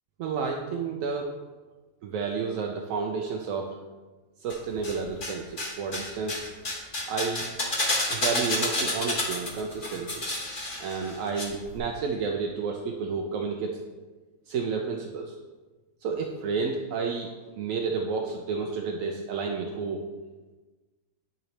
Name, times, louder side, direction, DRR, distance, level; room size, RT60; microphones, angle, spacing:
voice 1, 0.2-1.3 2.0-3.7 4.4-6.4 7.1-7.5 8.1-10.2 10.8-13.8 14.5-15.3 16.0-17.3 17.6-20.0, right 5 dB, 90° right, 1 dB, 1.0 m, -31 dB
sound 1, 4.5-5.3 5.6-11.4 11.7-11.8, left 2 dB, 40° left, 1.3 m, -30 dB
10.5 x 3.9 x 3.2 m, 1.2 s
omnidirectional pair, 1.4 m